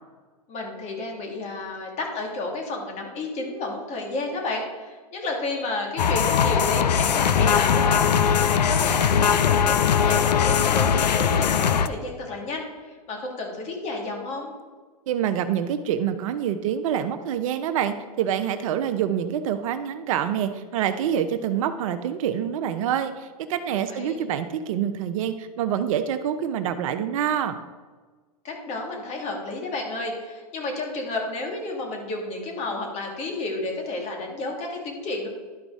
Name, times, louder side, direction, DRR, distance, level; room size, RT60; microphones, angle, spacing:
voice 1, 0.5-14.5 23.7-24.3 28.4-35.3, left 2 dB, 35° left, 1 dB, 2.0 m, -31 dB
sound 1, 6.0-11.9, left 7 dB, 85° left, 0.5 m, -20 dB
voice 2, 15.1-27.6, right 9 dB, 55° right, 10 dB, 0.6 m, -26 dB
11.5 x 5.0 x 3.6 m, 1.4 s
hypercardioid pair, 120°, 21 cm